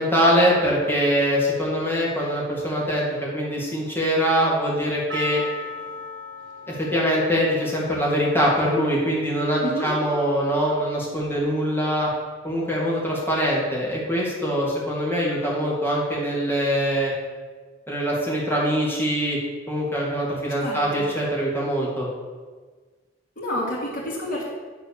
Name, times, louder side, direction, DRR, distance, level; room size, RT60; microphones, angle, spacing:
voice 1, 0.0-5.4 6.7-12.1 12.4-17.1 17.9-19.4 19.7-22.1, equal, 10° left, -5 dB, 2.4 m, -23 dB
Percussion, 5.1-10.1, left 2 dB, 90° right, 1.0 m, -38 dB
voice 2, 20.6-21.1 23.4-24.4, equal, 50° left, -5 dB, 2.8 m, -29 dB
9.7 x 4.1 x 6.6 m, 1.4 s
head